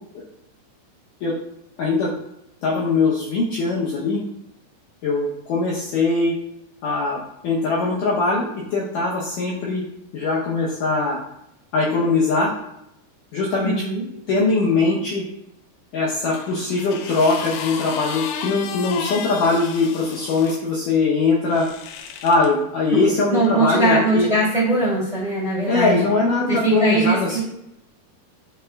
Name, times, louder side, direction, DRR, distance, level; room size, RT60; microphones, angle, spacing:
voice 1, 1.8-2.1 2.6-4.2 5.0-6.3 6.8-9.8 10.1-11.2 11.7-12.5 13.3-13.7 14.3-15.2 15.9-21.7 22.2-24.3 25.7-27.4, left 3 dB, 75° left, -5 dB, 2.0 m, -21 dB
voice 2, 13.6-14.0 22.9-25.9 26.5-27.4, right 2 dB, 15° right, -7 dB, 1.6 m, -21 dB
sound 1, 16.3-20.6 21.5-22.5 23.4-23.6, left 8 dB, 90° left, 2.7 m, -34 dB
10.5 x 4.2 x 2.3 m, 0.83 s
omnidirectional pair, 4.7 m